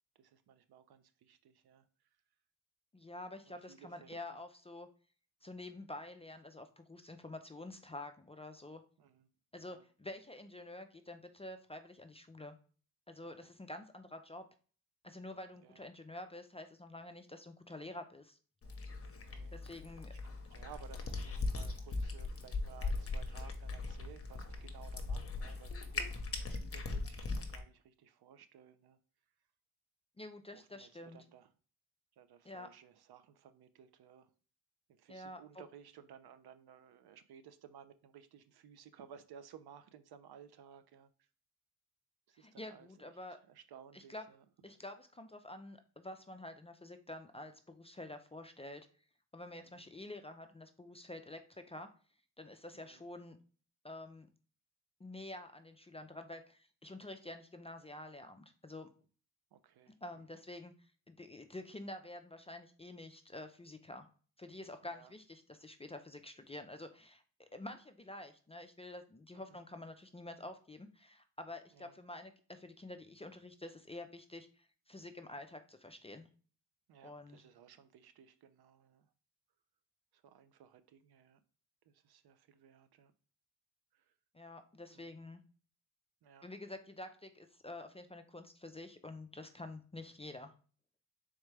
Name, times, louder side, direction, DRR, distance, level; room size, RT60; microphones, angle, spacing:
voice 1, 0.2-1.9 3.5-4.2 9.0-9.3 9.6-9.8 13.2-13.5 15.6-15.8 19.1-19.6 19.9-29.0 30.5-31.5 32.2-34.3 34.9-41.3 42.3-42.9 43.3-44.4 49.6-49.9 52.7-53.0 59.5-60.2 64.8-65.1 69.3-69.6 71.7-71.9 76.9-79.1 80.1-81.4 81.9-83.1 83.9-84.1 84.9-85.2 86.2-86.5, right 8 dB, 65° right, 0.6 m, -58 dB
voice 2, 2.9-4.9 5.4-8.8 9.5-12.6 13.1-14.4 15.0-18.4 19.5-20.1 30.2-31.2 32.4-32.7 35.1-35.6 42.3-43.4 43.9-44.2 44.6-48.9 49.3-51.9 52.4-53.4 53.8-54.3 55.0-58.9 60.0-64.1 64.4-76.3 77.0-77.4 84.3-85.4 86.4-90.5, left 1 dB, 15° left, 0.4 m, -48 dB
Cat, 18.6-27.6, left 3 dB, 35° left, 0.8 m, -40 dB
3.6 x 3.3 x 3.2 m
cardioid pair, 55°, 42 cm